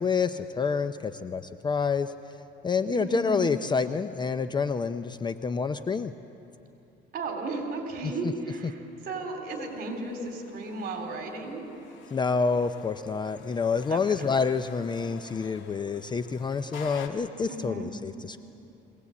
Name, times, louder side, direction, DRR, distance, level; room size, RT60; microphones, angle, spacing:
voice 1, 0.0-2.1 2.6-6.1 12.1-18.4, left 5 dB, 20° left, 10 dB, 0.5 m, -28 dB
voice 2, 2.9-3.4 7.1-11.6 13.9-14.0 17.5-17.9, right 2 dB, 50° right, 3 dB, 3.9 m, -34 dB
sound 1, 9.6-17.1, left 7 dB, 65° left, 1.8 m, -49 dB
22.0 x 18.0 x 8.4 m, 2.9 s
cardioid pair, 130°, 20 cm